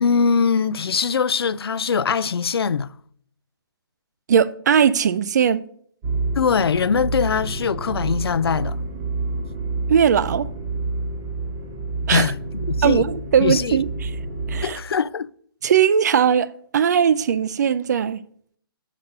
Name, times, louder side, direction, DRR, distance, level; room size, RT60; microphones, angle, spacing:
voice 1, 0.0-2.9 6.4-8.8 12.1-13.0 13.4-13.8 14.6-15.3, left 6 dB, 85° left, 0.4 m, -22 dB
voice 2, 4.3-5.6 9.9-10.5 12.1-12.3 12.8-14.1 14.5-14.8 15.6-18.2, right 8 dB, 45° right, 0.4 m, -19 dB
sound 1, 6.0-14.6, right 3 dB, 15° right, 0.9 m, -28 dB
6.1 x 5.7 x 6.4 m
hypercardioid pair, 160°, 12 cm